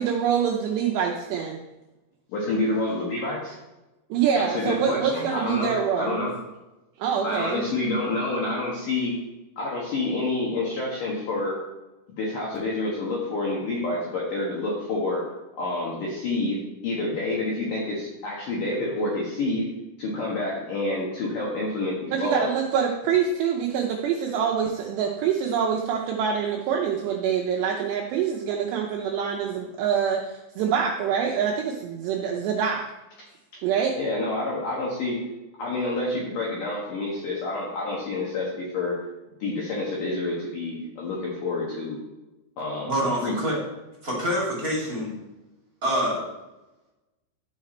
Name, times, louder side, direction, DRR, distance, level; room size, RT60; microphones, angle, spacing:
voice 1, 0.0-1.6 4.1-6.2 7.0-7.7 22.1-32.8 33.6-34.0, right 7 dB, 80° right, 0 dB, 2.5 m, -25 dB
voice 2, 2.3-3.6 4.3-6.3 7.2-9.2 9.6-11.6 12.1-15.3 15.6-19.7 20.0-22.5 34.0-35.3 35.6-39.0 39.4-42.0 42.6-42.9 43.2-43.4, left 2 dB, 65° left, -4 dB, 2.1 m, -28 dB
voice 3, 42.9-43.6 44.0-45.1 45.8-46.2, equal, 30° right, -6 dB, 1.8 m, -26 dB
12.0 x 5.8 x 4.3 m, 1.0 s
omnidirectional pair, 5.7 m